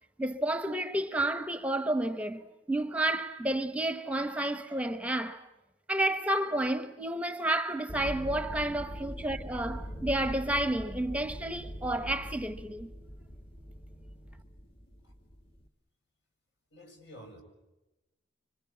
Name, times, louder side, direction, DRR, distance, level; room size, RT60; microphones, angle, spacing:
voice 1, 0.2-5.5 5.9-12.9, right 1 dB, 5° right, 0.9 m, -31 dB
sound 1, 7.9-15.7, equal, 30° left, 1.6 m, -42 dB
voice 2, 16.7-17.4, equal, 70° left, 7.0 m, -50 dB
26.5 x 25.5 x 8.6 m
head